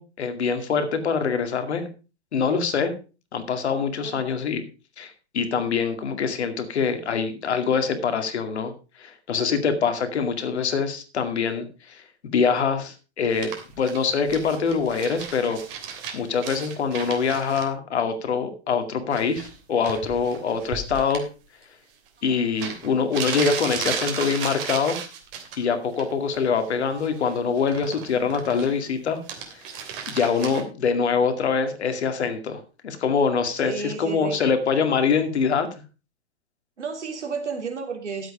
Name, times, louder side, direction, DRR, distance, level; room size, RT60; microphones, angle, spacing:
voice 1, 0.0-1.9 2.3-2.9 3.3-4.6 5.0-8.7 9.0-15.6 16.1-21.2 22.2-25.0 25.6-29.2 29.6-29.8 30.1-35.7, left 5 dB, 70° left, 2.3 m, -24 dB
messing with paper, 13.3-17.6 19.1-19.6 19.8-21.2 22.2-22.3 22.6-25.6 25.9-26.4 26.6-28.9 29.2-30.6, right 7 dB, 50° right, 3.2 m, -34 dB
voice 2, 33.6-34.4 36.8-38.3, right 5 dB, 80° right, 3.3 m, -32 dB
12.5 x 8.0 x 4.9 m
hypercardioid pair, 115°, 34 cm